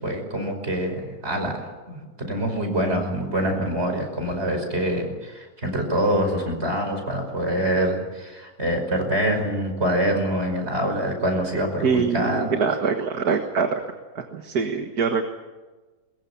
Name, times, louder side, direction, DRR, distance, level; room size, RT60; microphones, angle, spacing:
voice 1, 0.0-12.5, right 1 dB, 45° right, 4 dB, 5.6 m, -25 dB
voice 2, 11.8-13.8 14.2-15.3, right 5 dB, 90° right, 5 dB, 2.1 m, -24 dB
22.0 x 21.5 x 8.5 m, 1.2 s
omnidirectional pair, 1.6 m